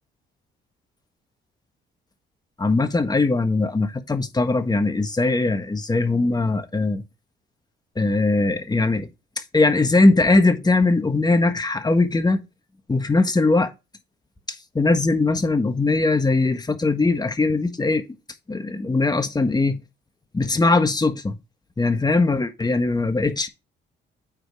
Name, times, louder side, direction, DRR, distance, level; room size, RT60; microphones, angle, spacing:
voice 1, 2.6-7.0 8.0-9.1 9.5-12.4 12.9-13.7 14.7-18.0 18.5-19.8 20.3-21.4 21.8-23.5, left 3 dB, 20° left, 1.5 m, -20 dB
9.0 x 5.2 x 3.8 m
cardioid pair, 90°, 20 cm